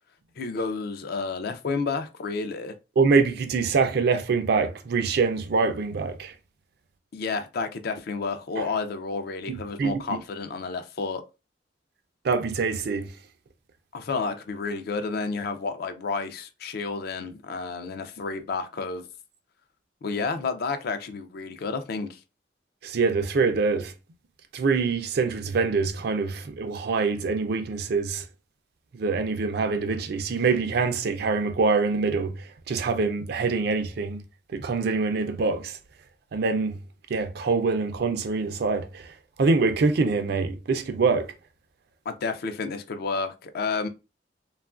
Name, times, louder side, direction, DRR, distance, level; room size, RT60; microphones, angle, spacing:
voice 1, 0.4-2.7 7.1-11.2 13.9-19.0 20.0-22.2 42.1-43.9, left 4 dB, 55° left, 0.4 m, -31 dB
voice 2, 3.0-6.3 8.6-8.7 9.5-10.0 12.2-13.1 22.8-23.9 24.5-28.2 28.9-34.2 34.5-35.8 36.3-36.8 37.1-39.1 39.4-41.3, right 4 dB, 60° right, 0.4 m, -25 dB
3.0 x 2.3 x 2.3 m
head